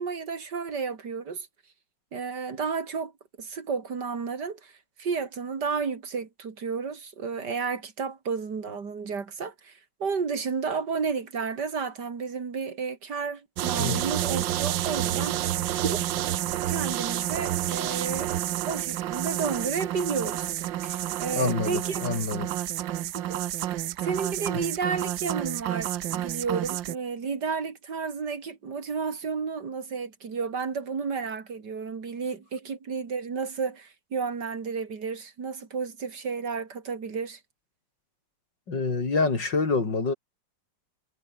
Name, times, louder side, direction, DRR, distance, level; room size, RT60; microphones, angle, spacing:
voice 1, 0.0-1.5 2.1-3.1 3.4-15.4 15.8-16.2 16.7-18.3 18.7-20.5 20.8-22.0 23.1-23.7 24.0-37.4, right 5 dB, 65° right, 3.1 m, -32 dB
sound 1, 13.6-27.0, right 13 dB, 90° right, 1.6 m, -29 dB
voice 2, 21.3-22.5 38.7-40.1, left 3 dB, 75° left, 4.6 m, -26 dB
omnidirectional pair, 2.0 m